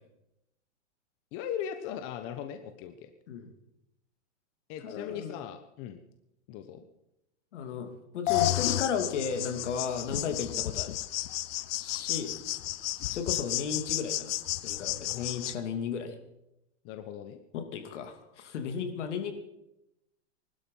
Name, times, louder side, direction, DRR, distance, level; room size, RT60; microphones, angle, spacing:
voice 1, 1.3-3.1 4.7-6.0 6.5-6.8 16.8-17.4, left 9 dB, 35° left, 8 dB, 1.2 m, -39 dB
voice 2, 4.8-5.4 7.5-10.9 11.8-12.3 13.1-16.2 17.5-19.3, left 6 dB, 75° left, 6 dB, 2.8 m, -34 dB
sound 1, 8.3-15.5, left 16 dB, 55° left, 0.8 m, -32 dB
21.0 x 12.5 x 5.6 m, 0.89 s
supercardioid pair, 145°, 36 cm